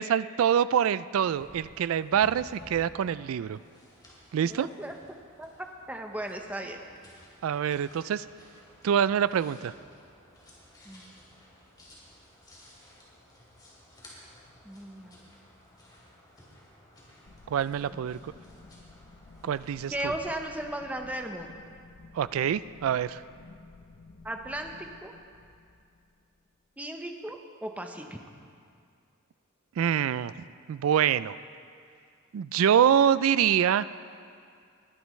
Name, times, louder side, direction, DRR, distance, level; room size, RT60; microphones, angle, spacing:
voice 1, 0.0-3.6 4.3-4.7 7.4-8.2 8.8-9.7 17.5-18.3 19.4-20.1 22.1-23.2 29.8-30.3 30.7-31.3 32.3-33.8, right 9 dB, 75° right, 16 dB, 0.3 m, -25 dB
sound 1, 1.3-20.2, equal, 20° left, 2.8 m, -55 dB
voice 2, 4.4-5.0 5.4-6.8 10.8-11.1 14.6-15.3 17.9-18.0 19.9-21.5 24.2-25.1 26.8-28.2, right 1 dB, 5° right, 3 dB, 0.8 m, -36 dB
sound 2, 17.3-26.5, left 3 dB, 70° left, 0.7 m, -53 dB
20.0 x 11.5 x 3.2 m, 2.4 s
head